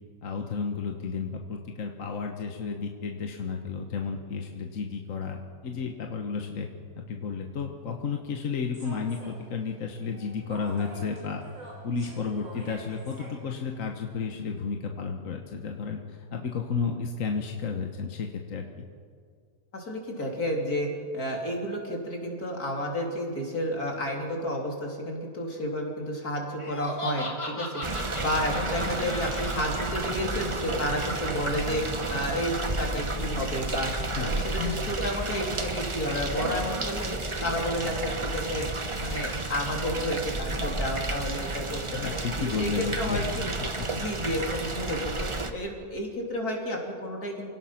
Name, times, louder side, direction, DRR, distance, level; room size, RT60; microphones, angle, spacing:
voice 1, 0.2-6.7 6.9-11.4 11.8-18.7 33.9-34.9 41.9-43.3 43.8-43.9 44.2-44.4, left 5 dB, 60° left, 2 dB, 1.6 m, -32 dB
Human voice / Subway metro underground, 8.7-14.4, right 1 dB, 65° right, 5.5 m, -47 dB
voice 2, 19.7-27.8 28.2-31.8 32.1-38.7 39.0-42.2 42.6-43.5 43.9-47.5, equal, 80° left, 0 dB, 3.8 m, -31 dB
Laughter, 26.6-29.6, left 1 dB, 20° left, 2.6 m, -37 dB
sound 1, 27.8-45.5, right 2 dB, 25° right, 1.0 m, -32 dB
27.5 x 18.0 x 5.9 m, 2.1 s
omnidirectional pair, 1.6 m